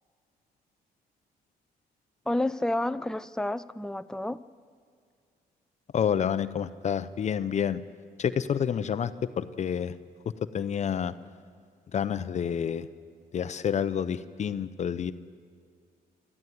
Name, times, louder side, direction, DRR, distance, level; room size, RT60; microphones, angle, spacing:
voice 1, 2.3-4.4, left 1 dB, 5° left, 13 dB, 0.5 m, -30 dB
voice 2, 5.9-7.8 8.2-9.1 9.4-9.9 10.5-11.1 11.9-12.9 13.3-15.1, left 8 dB, 45° left, 13 dB, 0.7 m, -28 dB
24.5 x 14.0 x 9.4 m, 2.2 s
cardioid pair, 110°, 16 cm